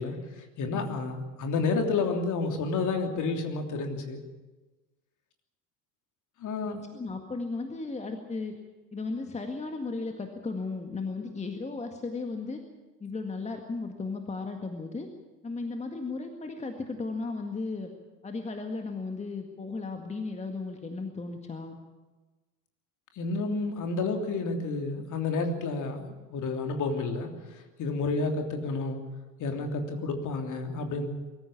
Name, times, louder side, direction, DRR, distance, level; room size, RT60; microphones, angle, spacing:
voice 1, 0.0-4.2 6.4-6.8 23.2-29.0 29.4-31.1, left 3 dB, 40° left, 4 dB, 3.2 m, -30 dB
voice 2, 6.6-8.6 8.9-12.6 13.0-15.1 15.4-17.9 18.2-21.8, left 3 dB, 15° left, 5 dB, 1.9 m, -35 dB
23.0 x 14.5 x 8.7 m, 1.2 s
figure-of-eight pair, 75°, 48 cm